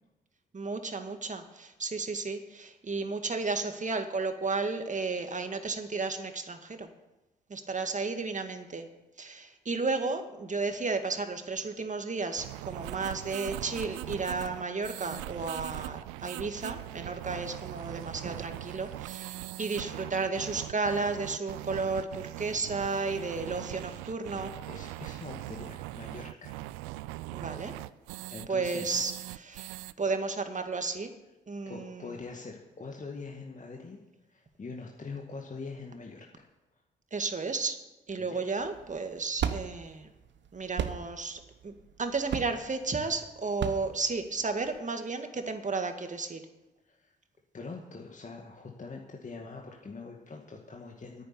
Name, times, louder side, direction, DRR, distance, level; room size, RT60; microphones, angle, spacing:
voice 1, 0.5-6.9 7.5-8.9 9.2-24.5 27.3-27.7 28.5-29.7 30.0-31.1 31.5-32.2 37.1-37.8 38.1-40.1 40.5-41.7 42.0-46.4, right 4 dB, 35° right, 7 dB, 2.0 m, -33 dB
sound 1, 12.3-29.9, right 18 dB, 80° right, 0.4 m, -41 dB
voice 2, 24.7-26.5 26.8-27.1 28.3-28.9 31.7-34.0 34.3-36.5 38.2-38.4 46.9-47.1 47.5-51.2, left 4 dB, 35° left, 0 dB, 2.1 m, -43 dB
sound 2, 38.6-44.8, right 8 dB, 60° right, 1.0 m, -36 dB
10.0 x 9.5 x 9.7 m, 1.0 s
hypercardioid pair, 40°, 21 cm